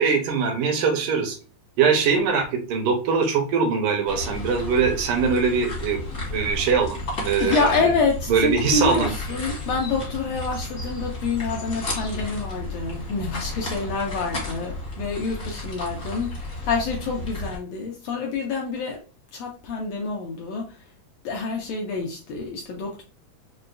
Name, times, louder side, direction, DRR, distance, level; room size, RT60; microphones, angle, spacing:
voice 1, 0.0-1.4 1.8-7.6 8.3-9.1, right 5 dB, 80° right, 4 dB, 2.4 m, -22 dB
sound 1, 4.1-17.6, left 1 dB, 50° left, 0.9 m, -32 dB
voice 2, 7.4-19.0 19.3-20.8 21.2-23.0, left 4 dB, 85° left, 0 dB, 1.4 m, -27 dB
6.6 x 2.2 x 2.5 m, 0.36 s
omnidirectional pair, 3.9 m